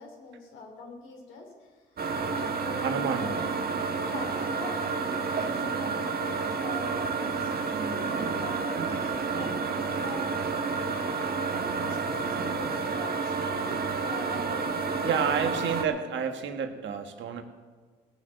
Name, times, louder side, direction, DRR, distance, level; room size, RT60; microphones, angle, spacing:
voice 1, 0.0-1.5 2.1-3.5 3.9-7.5 7.9-11.4 11.8-15.4, left 3 dB, 80° left, 2 dB, 2.9 m, -42 dB
sound 1, 2.0-15.8, right 5 dB, 50° right, 1.5 m, -30 dB
voice 2, 2.7-3.3 15.0-17.4, right 7 dB, 70° right, 7 dB, 1.5 m, -30 dB
17.5 x 6.4 x 7.9 m, 1.5 s
hypercardioid pair, 45°, 20 cm